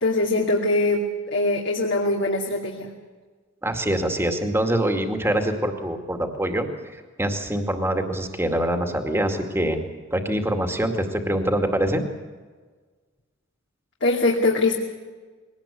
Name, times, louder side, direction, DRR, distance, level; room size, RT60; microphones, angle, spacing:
voice 1, 0.0-2.9 14.0-14.8, left 2 dB, 65° left, -1 dB, 2.5 m, -22 dB
voice 2, 3.6-12.0, right 1 dB, 15° right, 5 dB, 2.2 m, -25 dB
22.0 x 18.5 x 8.5 m, 1.4 s
head